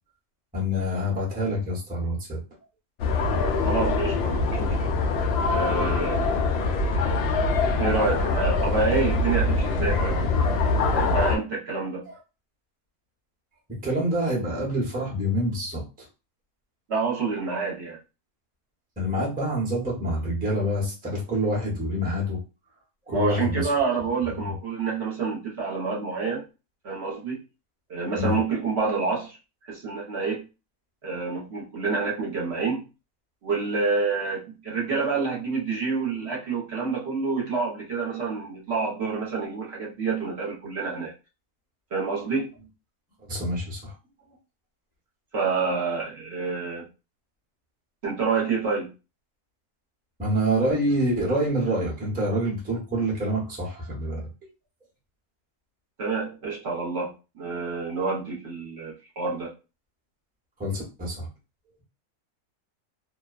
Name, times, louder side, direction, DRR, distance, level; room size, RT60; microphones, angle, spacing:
voice 1, 0.5-2.4 12.1-12.2 13.7-16.1 19.0-22.4 23.1-23.7 24.3-24.5 28.2-28.4 43.2-43.9 50.2-54.3 60.6-61.3, equal, 10° right, -4 dB, 0.6 m, -27 dB
sound 1, 3.0-11.4, left 3 dB, 75° left, 0.5 m, -24 dB
voice 2, 3.6-4.9 5.5-6.3 7.8-10.2 10.9-12.0 16.9-18.0 23.1-26.4 26.8-27.4 27.9-29.4 29.7-30.4 31.0-32.9 33.4-41.1 41.9-42.5 45.3-46.9 48.0-48.9 56.0-59.5, right 4 dB, 50° right, -4 dB, 0.9 m, -28 dB
2.6 x 2.2 x 2.4 m, 0.30 s
omnidirectional pair, 1.6 m